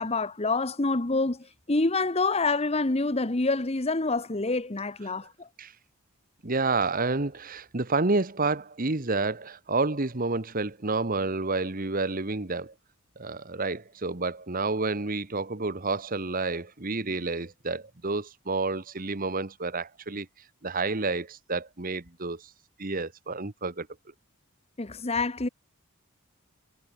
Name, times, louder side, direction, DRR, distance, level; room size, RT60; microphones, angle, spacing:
voice 1, 0.0-5.5 24.8-25.5, left 3 dB, 25° left, 1.0 m, -27 dB
voice 2, 6.4-12.7 13.2-20.3 20.6-22.5 22.8-23.9, right 3 dB, 40° right, 1.2 m, -29 dB
head